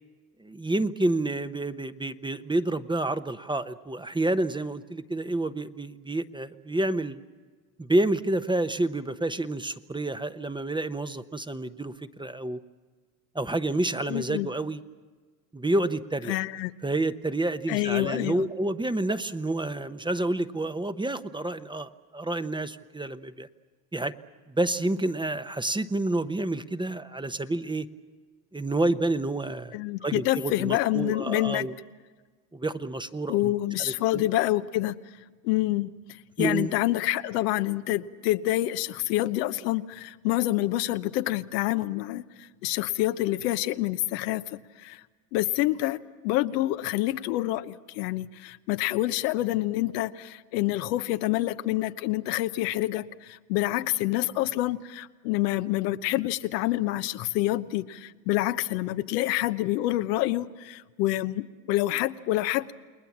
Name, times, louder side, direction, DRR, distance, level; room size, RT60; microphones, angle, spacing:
voice 1, 0.4-7.2 7.8-12.6 13.3-14.8 15.5-16.4 16.8-23.5 23.9-24.1 24.5-27.9 28.5-31.8 32.5-33.5 33.8-34.2 36.4-36.7, right 2 dB, 10° right, 11 dB, 0.9 m, -29 dB
voice 2, 14.1-14.5 16.3-16.7 17.7-18.5 29.7-31.7 33.3-35.0 35.4-35.9 36.4-45.0 45.3-62.7, left 16 dB, 80° left, 10 dB, 1.0 m, -27 dB
29.5 x 20.5 x 7.3 m, 1.4 s
supercardioid pair, 85°, 48 cm